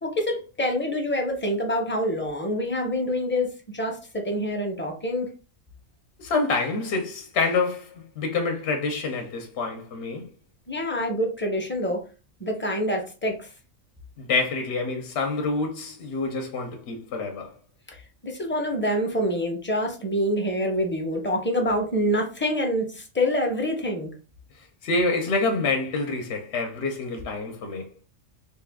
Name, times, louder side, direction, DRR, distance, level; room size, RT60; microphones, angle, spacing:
voice 1, 0.0-5.3 10.7-12.0 12.4-13.5 17.9-24.1, equal, 15° left, 0.5 m, -26 dB
voice 2, 6.2-10.3 14.2-17.5 24.8-27.9, left 3 dB, 65° left, 0.9 m, -27 dB
3.5 x 2.3 x 3.4 m
omnidirectional pair, 1.3 m